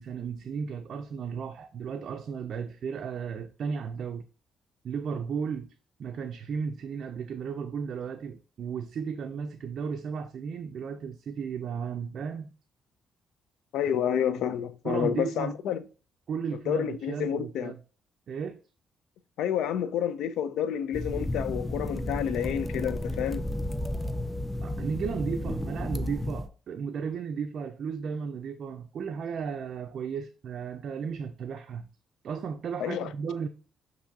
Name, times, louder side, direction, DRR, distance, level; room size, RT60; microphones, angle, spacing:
voice 1, 0.0-4.3 4.8-5.7 6.0-12.5 14.8-15.5 16.3-17.8 18.3-18.6 24.6-31.9 32.2-33.5, right 6 dB, 60° right, 0.4 m, -34 dB
voice 2, 13.7-15.8 16.7-17.7 19.4-23.4 32.8-33.1, left 9 dB, 80° left, 0.3 m, -29 dB
sound 1, 20.9-26.5, left 1 dB, 10° left, 0.4 m, -32 dB
6.9 x 2.6 x 2.6 m
cardioid pair, 90°, 0 cm